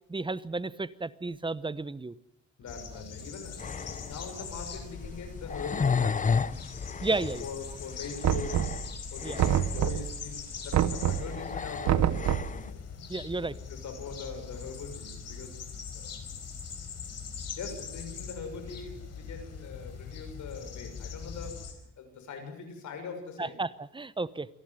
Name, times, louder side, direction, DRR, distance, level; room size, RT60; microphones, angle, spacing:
voice 1, 0.1-2.1 7.0-7.4 9.2-9.4 13.1-13.6 23.4-24.5, right 3 dB, 15° right, 17 dB, 0.9 m, -32 dB
voice 2, 2.6-6.6 7.1-8.7 9.1-12.8 13.7-15.6 15.9-16.3 17.4-21.6 22.0-23.6, left 5 dB, 70° left, 5 dB, 6.5 m, -42 dB
sound 1, 2.7-21.7, left 6 dB, 55° left, 4.7 m, -42 dB
sound 2, 3.6-12.7, left 5 dB, 25° left, 0.8 m, -34 dB
Knock, 8.2-9.0 9.4-10.2 10.7-11.4 11.9-12.6, right 11 dB, 65° right, 1.0 m, -26 dB
27.5 x 11.5 x 9.3 m, 0.82 s
cardioid pair, 90°, 30 cm